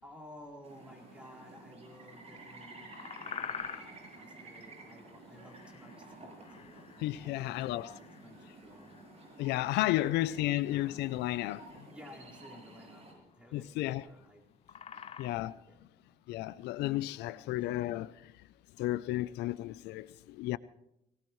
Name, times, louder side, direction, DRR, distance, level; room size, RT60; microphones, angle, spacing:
voice 1, 0.0-8.9 11.9-14.4 14.9-15.2 15.7-16.2 17.2-17.6, left 1 dB, 5° right, 4.6 m, -55 dB
sound 1, 0.6-13.1, right 2 dB, 40° right, 7.4 m, -52 dB
sound 2, 2.6-15.5, left 7 dB, 35° left, 0.9 m, -47 dB
voice 2, 7.0-7.9 9.4-11.9 13.5-14.0 15.2-15.6 16.3-18.3 18.8-20.6, left 16 dB, 85° left, 0.5 m, -33 dB
23.5 x 18.0 x 3.1 m
cardioid pair, 110°, 17 cm